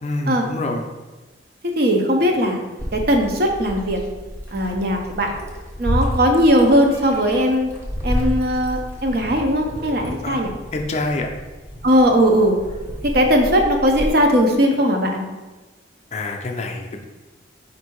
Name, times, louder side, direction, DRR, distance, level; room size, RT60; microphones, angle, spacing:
voice 1, 0.0-0.9 10.2-10.4 10.7-11.3 16.1-17.1, left 2 dB, 40° left, 3 dB, 0.4 m, -26 dB
voice 2, 1.6-2.7 2.9-4.0 4.5-5.3 5.8-7.7 8.0-10.5 11.8-12.6 13.1-15.2, equal, 55° right, 3 dB, 0.6 m, -18 dB
Meow, 2.8-14.1, equal, 15° right, 0.7 m, -30 dB
4.5 x 2.6 x 4.5 m, 1.2 s
head